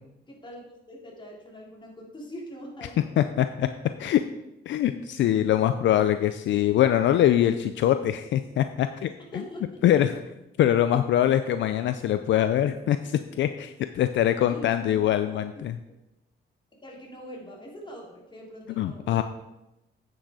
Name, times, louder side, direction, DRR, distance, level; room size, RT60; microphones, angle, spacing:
voice 1, 0.3-3.1 9.2-9.8 14.5-15.7 16.7-19.2, equal, 25° left, -2 dB, 3.0 m, -43 dB
voice 2, 3.2-3.7 4.0-4.2 4.7-9.1 9.8-10.1 10.6-15.7 18.8-19.2, left 11 dB, 70° left, 10 dB, 0.5 m, -23 dB
8.9 x 6.2 x 4.9 m, 0.92 s
cardioid pair, 90°, 20 cm